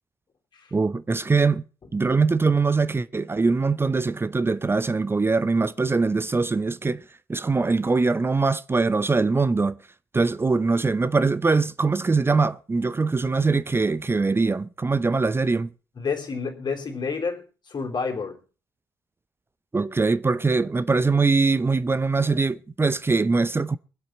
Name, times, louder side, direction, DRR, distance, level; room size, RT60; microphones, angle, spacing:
voice 1, 0.7-1.6 1.9-7.0 7.3-9.8 10.1-15.7 19.7-23.8, right 4 dB, 20° right, 0.6 m, -22 dB
voice 2, 16.0-18.4, left 5 dB, 40° left, 3.3 m, -29 dB
22.5 x 8.1 x 4.3 m
figure-of-eight pair, 45°, 12 cm